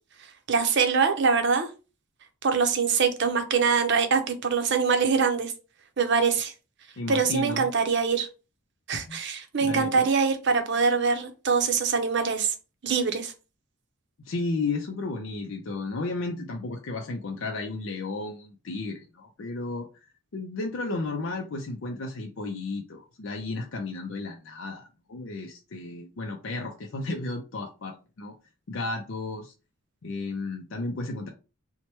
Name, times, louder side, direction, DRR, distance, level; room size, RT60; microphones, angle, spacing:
voice 1, 0.5-1.7 2.4-5.5 6.0-6.5 7.1-8.3 8.9-12.5 12.8-13.3, right 5 dB, 55° right, 0.6 m, -24 dB
voice 2, 7.0-7.7 9.1-9.2 9.6-10.1 14.2-28.3 28.7-29.5 30.0-31.3, left 3 dB, 60° left, 0.5 m, -33 dB
4.4 x 2.1 x 2.9 m
head